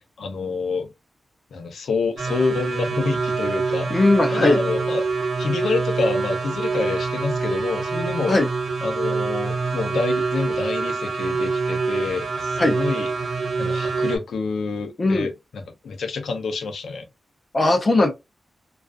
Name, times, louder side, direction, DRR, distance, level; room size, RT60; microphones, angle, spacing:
voice 1, 0.2-0.9 1.5-5.1 5.4-8.3 8.8-13.1 13.6-17.0, left 4 dB, 90° left, 0.6 m, -27 dB
sound 1, 2.2-14.2, right 4 dB, 80° right, 0.7 m, -25 dB
voice 2, 3.9-4.6 8.3-8.5 12.6-12.8 15.0-15.3 17.5-18.1, left 2 dB, 35° left, 0.6 m, -18 dB
2.4 x 2.3 x 2.4 m
wide cardioid pair, 130°, 0 cm